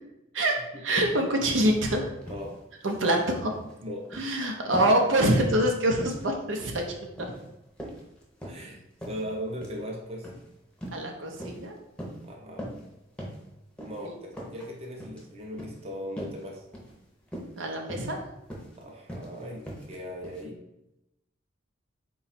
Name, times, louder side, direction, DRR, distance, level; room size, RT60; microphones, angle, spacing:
voice 1, 0.3-2.1 2.8-3.5 4.1-6.8 7.2-7.3 10.9-11.7 14.0-14.1 17.6-18.2, right 1 dB, 85° right, 2 dB, 0.6 m, -25 dB
sound 1, 0.9-1.2 1.6-1.9 2.2-3.1 3.4-3.7 4.1-4.3 4.7-5.0 5.3-5.7 6.0-6.2 6.6-6.9 7.2-7.4 7.8-8.6 9.0-9.2 9.6-9.8 10.2-10.4 10.8-11.0 11.4-11.7 12.0-12.2 12.6-12.9 13.2-13.4 13.8-14.0 14.3-14.7 15.0-15.2 15.6-15.8 16.2-16.4 16.7-16.9 17.3-17.6 17.9-18.2 18.5-18.8 19.1-19.3 19.7-20.0 20.2-20.4, equal, 5° left, 0.6 m, -39 dB
voice 2, 8.4-8.8 9.1-10.3 12.2-12.7 13.8-16.6 18.8-20.6, equal, 30° right, 0 dB, 0.6 m, -38 dB
4.0 x 2.3 x 4.0 m, 0.89 s
head